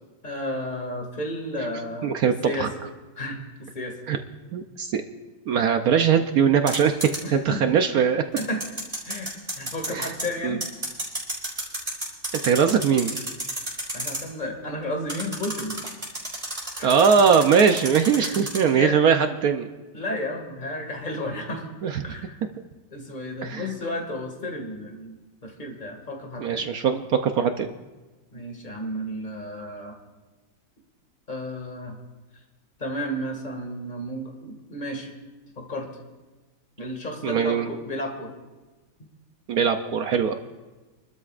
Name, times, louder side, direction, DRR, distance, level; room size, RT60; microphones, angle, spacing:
voice 1, 0.2-2.8 3.2-4.0 7.2-7.8 8.4-8.6 9.1-10.6 12.5-12.8 13.9-15.8 16.8-17.0 18.2-19.0 19.9-21.7 22.0-22.4 22.9-25.2 25.4-26.7 28.3-30.0 31.3-32.0 32.8-35.1 35.6-35.9 36.8-38.3 39.0-39.1, left 1 dB, 25° left, 2 dB, 2.0 m, -33 dB
voice 2, 2.0-2.7 4.1-4.2 4.5-5.0 5.5-7.0 7.3-8.2 9.9-10.1 10.4-10.6 12.3-13.2 16.8-19.7 21.8-22.0 23.4-23.7 26.4-27.7 37.2-37.7 39.5-40.3, right 7 dB, 65° right, 7 dB, 0.9 m, -21 dB
sound 1, 6.7-7.2 8.4-10.3 10.6-14.2 15.1-18.6, right 1 dB, 20° right, 4.8 m, -31 dB
28.5 x 12.5 x 2.5 m, 1.2 s
omnidirectional pair, 2.1 m